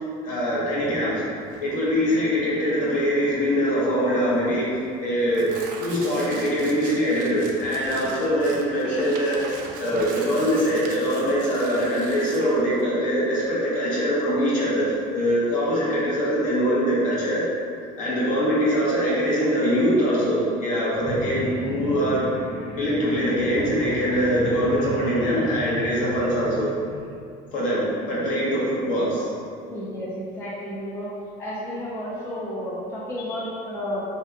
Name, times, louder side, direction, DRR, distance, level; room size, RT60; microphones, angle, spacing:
voice 1, 0.2-1.2 1.6-5.5 5.8-9.4 9.8-17.4 18.0-22.2 22.8-26.7 27.5-29.3, equal, 55° left, -7 dB, 1.0 m, -23 dB
Tearing, 1.4-15.7, right 4 dB, 55° right, 0.4 m, -42 dB
sound 1, 20.9-27.1, equal, 75° left, 1.2 m, -34 dB
voice 2, 29.7-31.1 31.4-34.0, left 1 dB, 15° left, -7 dB, 0.5 m, -32 dB
2.8 x 2.2 x 3.5 m, 2.4 s
cardioid pair, 130°, 17 cm